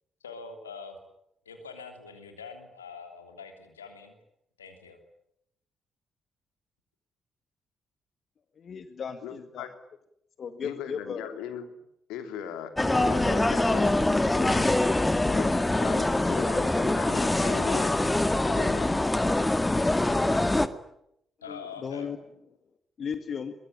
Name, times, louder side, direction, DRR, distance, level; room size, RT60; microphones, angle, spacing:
voice 1, 0.2-1.0 1.4-4.2 4.6-5.0 21.4-22.1, left 5 dB, 85° left, 5 dB, 3.1 m, -44 dB
voice 2, 8.6-9.7 10.4-11.3 17.4-18.0 21.5-22.2 23.0-23.5, left 6 dB, 50° left, 9 dB, 1.9 m, -36 dB
voice 3, 9.2-9.7 10.6-11.7 12.1-14.0 14.3-14.8 15.3-17.9 18.4-18.9, left 9 dB, 65° left, 8 dB, 3.0 m, -38 dB
sound 1, 12.8-20.7, left 2 dB, 15° left, 2.0 m, -24 dB
23.0 x 22.5 x 10.0 m, 0.77 s
figure-of-eight pair, 40°, 0 cm